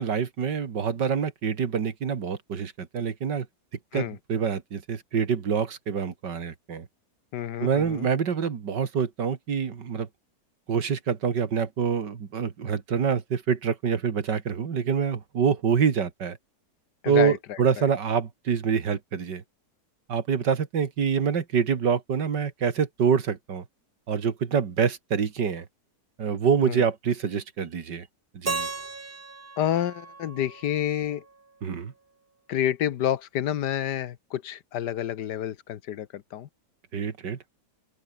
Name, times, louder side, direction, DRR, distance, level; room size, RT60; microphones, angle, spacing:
voice 1, 0.0-3.5 3.9-6.9 7.6-10.1 10.7-16.4 17.1-19.4 20.1-23.6 24.1-25.6 26.2-28.1 28.3-28.7 31.6-31.9 36.9-37.5, right 6 dB, 80° right, 2.5 m, -26 dB
voice 2, 7.3-8.1 17.0-17.6 26.6-26.8 29.6-31.2 32.5-36.5, left 11 dB, 75° left, 1.5 m, -29 dB
Keyboard (musical), 28.5-31.4, right 3 dB, 30° right, 2.1 m, -36 dB
open air
omnidirectional pair, 1.8 m